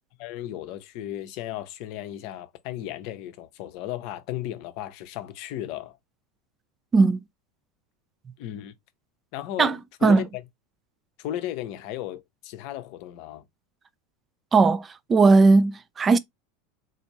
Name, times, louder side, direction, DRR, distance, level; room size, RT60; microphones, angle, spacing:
voice 1, 0.2-6.0 8.4-8.7 9.3-10.4 11.2-13.4, left 12 dB, 55° left, 0.6 m, -35 dB
voice 2, 6.9-7.2 9.6-9.7 10.0-10.2 14.5-16.2, right 4 dB, 25° right, 0.4 m, -18 dB
4.0 x 2.5 x 3.0 m
figure-of-eight pair, 80°, 0 cm